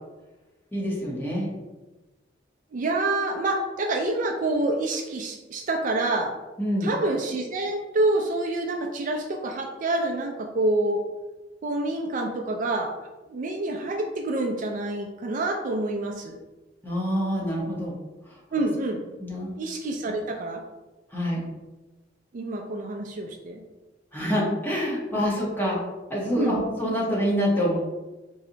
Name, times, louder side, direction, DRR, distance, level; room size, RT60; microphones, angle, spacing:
voice 1, 0.7-1.5 6.6-6.9 16.8-17.9 18.3-18.4 19.2-19.5 21.1-21.4 24.1-25.8 26.1-27.8, equal, 10° left, -5 dB, 1.0 m, -26 dB
voice 2, 2.7-6.3 6.8-11.0 11.6-12.9 13.3-16.4 18.5-19.1 19.6-20.6 22.3-23.6 25.1-25.2 26.3-26.6, right 2 dB, 45° right, 2 dB, 0.4 m, -27 dB
3.2 x 2.7 x 3.8 m, 1.1 s
head